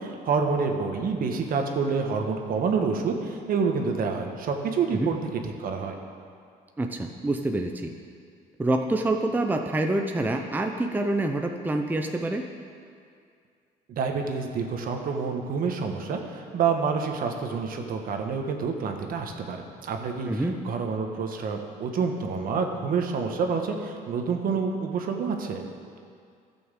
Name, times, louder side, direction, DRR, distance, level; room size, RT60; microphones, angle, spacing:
voice 1, 0.0-5.9 13.9-25.6, right 5 dB, 55° right, 4 dB, 1.4 m, -28 dB
voice 2, 6.8-7.9 8.6-12.4 20.3-20.6, right 2 dB, 10° right, 4 dB, 0.6 m, -26 dB
13.0 x 6.2 x 7.5 m, 2.3 s
cardioid pair, 110°, 17 cm